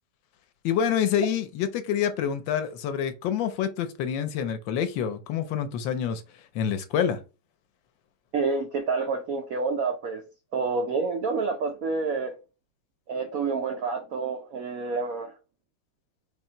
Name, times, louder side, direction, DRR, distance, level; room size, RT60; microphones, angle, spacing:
voice 1, 0.6-6.2 6.5-7.2, left 8 dB, 75° left, 1.2 m, -27 dB
voice 2, 8.3-10.2 10.5-12.3 13.1-15.3, right 4 dB, 80° right, 0.7 m, -28 dB
4.2 x 2.8 x 4.4 m
omnidirectional pair, 2.2 m